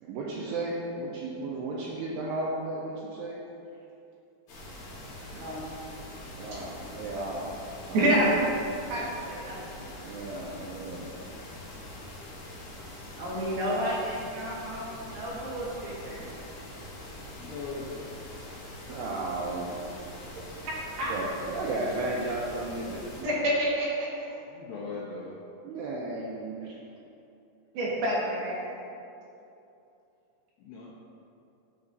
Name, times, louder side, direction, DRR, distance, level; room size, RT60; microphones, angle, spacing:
voice 1, 0.0-3.4 6.3-7.6 7.9-8.1 10.0-11.2 18.9-19.7 20.3-20.5 21.1-23.3 25.6-26.7, right 2 dB, 90° right, -4 dB, 2.3 m, -34 dB
sound 1, 4.5-23.2, left 1 dB, 60° left, 2.2 m, -44 dB
voice 2, 5.3-5.7 7.9-8.5 8.9-9.8 13.2-16.3 20.6-21.1 23.2-24.3 26.6-26.7 27.7-28.7, right 1 dB, 65° right, -7 dB, 2.8 m, -29 dB
voice 3, 17.3-18.1 24.5-25.3 30.6-30.9, left 4 dB, 80° left, -5 dB, 2.4 m, -39 dB
9.6 x 7.0 x 2.6 m, 2.7 s
omnidirectional pair, 5.4 m